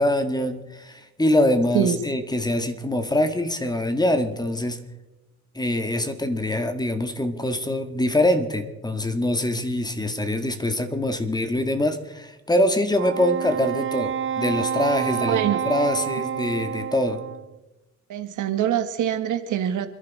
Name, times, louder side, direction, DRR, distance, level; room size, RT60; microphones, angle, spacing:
voice 1, 0.0-4.8 5.5-17.2, left 1 dB, 15° left, 8 dB, 1.8 m, -24 dB
Wind instrument woodwind instrument, 12.9-17.5, right 9 dB, 45° right, 0.6 m, -28 dB
voice 2, 15.3-15.6 18.1-19.9, right 10 dB, 80° right, 9 dB, 1.6 m, -24 dB
28.5 x 11.0 x 4.2 m, 1.0 s
cardioid pair, 90°, 30 cm